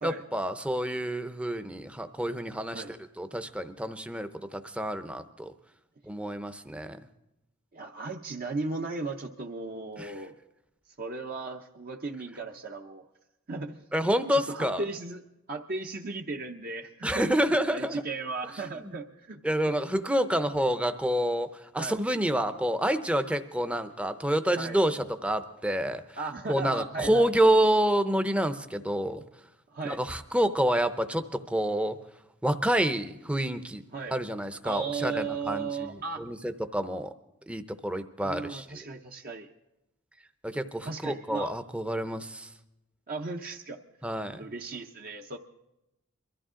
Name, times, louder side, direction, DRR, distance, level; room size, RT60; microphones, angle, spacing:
voice 1, 0.0-5.5 6.0-7.0 10.0-10.1 13.9-14.8 17.0-18.0 18.7-18.9 19.4-26.0 26.5-29.2 29.8-32.0 32.4-33.8 34.1-35.7 36.2-37.1 37.5-38.8 40.4-42.5 44.0-44.5, right 1 dB, 5° right, 9 dB, 0.7 m, -28 dB
voice 2, 7.7-10.4 11.0-13.1 13.5-13.8 14.3-15.2 15.5-19.4 19.7-19.8 21.8-22.0 24.6-24.8 26.2-27.3 29.7-30.0 33.9-34.1 34.6-36.2 38.2-39.5 40.8-41.5 43.1-43.8 44.4-45.4, right 3 dB, 45° right, 2 dB, 0.8 m, -36 dB
23.0 x 14.0 x 3.8 m, 0.91 s
head